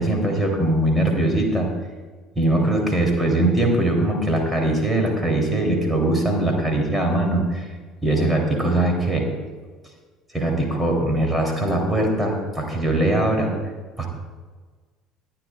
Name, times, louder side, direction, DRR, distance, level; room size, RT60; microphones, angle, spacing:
voice 1, 0.0-1.7 2.3-7.7 8.0-9.3 10.3-13.5 14.0-14.1, right 1 dB, 5° right, 0 dB, 3.2 m, -21 dB
21.5 x 9.7 x 2.4 m, 1.4 s
figure-of-eight pair, 60°, 0 cm